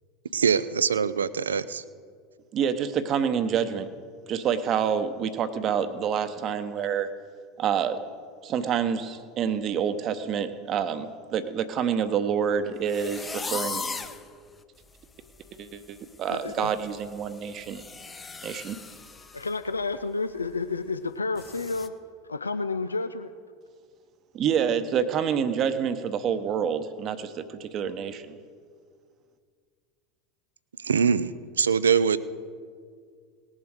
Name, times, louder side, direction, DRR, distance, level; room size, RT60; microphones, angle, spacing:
voice 1, 0.3-1.8 30.8-31.3 31.6-32.2, right 6 dB, 75° right, 17 dB, 0.4 m, -23 dB
voice 2, 2.5-3.9 4.3-7.1 7.6-8.0 8.4-13.8 15.6-17.8 18.4-18.8 24.3-28.4, right 7 dB, 40° right, 11 dB, 0.8 m, -27 dB
sound 1, 12.9-14.2 14.8-14.9 15.3-15.6 15.8-19.5 19.8-20.0 20.4-20.5 21.4-21.9, left 4 dB, 20° left, 0.8 m, -38 dB
voice 3, 16.3-16.7 19.3-21.9 22.3-23.3, left 3 dB, 85° left, 11 dB, 0.3 m, -30 dB
19.0 x 7.4 x 4.8 m, 2.1 s
figure-of-eight pair, 75°, 0 cm